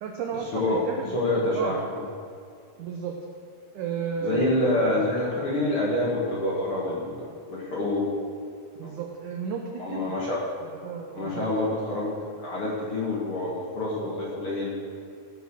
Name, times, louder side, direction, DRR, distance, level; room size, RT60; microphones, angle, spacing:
voice 1, 0.0-1.2 1.5-1.8 2.8-3.2 3.7-5.1 8.8-10.2 10.6-11.5, right 6 dB, 85° right, 2 dB, 1.8 m, -33 dB
voice 2, 1.1-1.8 4.2-8.1 8.8-8.9 9.8-10.4 11.1-14.7, left 2 dB, 45° left, -5 dB, 2.0 m, -27 dB
16.0 x 7.0 x 6.3 m, 2.4 s
omnidirectional pair, 4.8 m